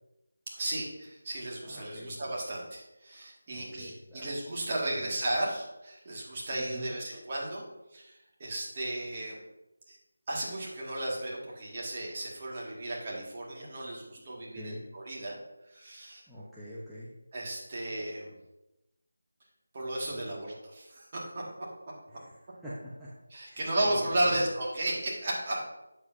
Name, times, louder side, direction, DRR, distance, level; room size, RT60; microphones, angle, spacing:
voice 1, 0.5-7.6 7.9-9.4 9.9-10.0 10.3-15.4 15.7-16.2 17.3-18.3 19.7-21.4 23.3-25.6, right 1 dB, 30° right, -4 dB, 2.0 m, -34 dB
voice 2, 1.6-2.2 3.5-4.3 4.9-5.1 6.5-6.9 14.5-14.8 16.3-17.1 20.1-20.5 22.1-22.3 22.6-23.1 23.5-23.6 24.2-24.4, equal, ahead, -13 dB, 0.8 m, -45 dB
8.1 x 7.2 x 2.8 m, 0.96 s
figure-of-eight pair, 170°, 0 cm